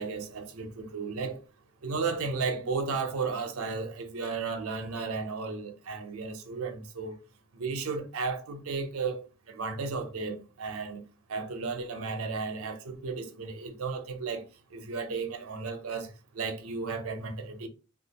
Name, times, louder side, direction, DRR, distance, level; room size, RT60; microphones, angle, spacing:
voice 1, 0.0-1.4 1.8-7.2 7.6-17.7, right 4 dB, 80° right, 0.6 m, -34 dB
3.3 x 2.4 x 2.8 m
head